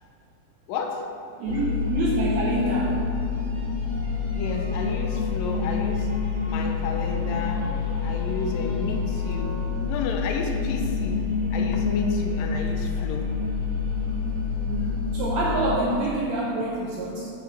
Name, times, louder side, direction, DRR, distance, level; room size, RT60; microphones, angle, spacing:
voice 1, 0.7-1.1 4.3-6.1 6.4-9.6 9.9-11.2 11.5-13.3, left 4 dB, 80° left, 4 dB, 2.3 m, -31 dB
voice 2, 1.4-3.0 14.6-17.3, right 1 dB, 75° right, -4 dB, 1.7 m, -26 dB
sound 1, 1.5-15.7, left 5 dB, 65° left, 3.0 m, -27 dB
sound 2, 3.1-10.3, right 1 dB, 40° right, 1.0 m, -45 dB
8.0 x 8.0 x 3.3 m, 2.6 s
omnidirectional pair, 4.0 m